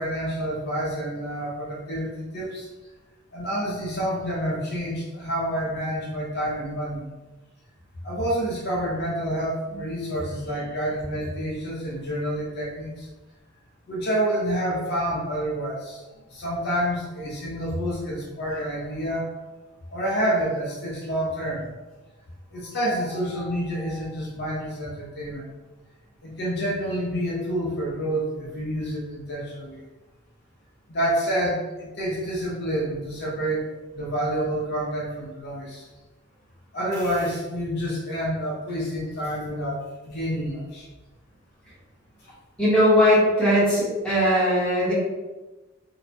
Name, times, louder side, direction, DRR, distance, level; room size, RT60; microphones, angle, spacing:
voice 1, 0.0-2.7 3.3-7.0 8.0-13.1 13.9-16.0 16.3-19.3 19.9-21.7 22.5-25.5 26.2-29.9 30.9-35.9 36.7-40.9 42.2-42.3, equal, 55° left, -5 dB, 0.6 m, -28 dB
voice 2, 42.6-44.9, equal, 5° left, -9 dB, 0.9 m, -19 dB
2.8 x 2.1 x 2.5 m, 1.2 s
head